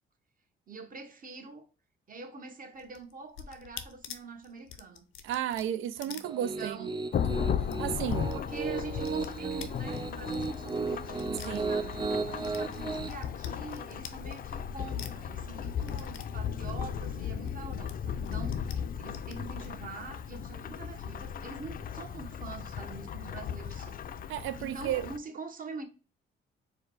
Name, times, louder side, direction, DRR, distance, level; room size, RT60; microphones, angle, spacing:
voice 1, 0.7-1.7 2.1-5.1 6.0-6.3 6.6-6.9 8.3-24.0 24.6-25.8, right 3 dB, 45° right, 1.1 m, -45 dB
sound 1, 2.7-7.0 7.2-7.3 7.6-8.4 8.6-12.1 12.4-14.7 15.0-17.5 17.9-18.7 19.1-19.7, left 9 dB, 90° left, 0.6 m, -47 dB
voice 2, 5.2-7.0 7.3-7.4 7.8-8.3 11.4-11.9 24.3-25.1, right 11 dB, 90° right, 0.5 m, -33 dB
Piano, 6.2-13.1, right 4 dB, 25° right, 0.5 m, -35 dB
Thunderstorm / Rain, 7.1-25.2, left 8 dB, 45° left, 0.4 m, -36 dB
4.6 x 2.2 x 4.7 m
cardioid pair, 90°, 20 cm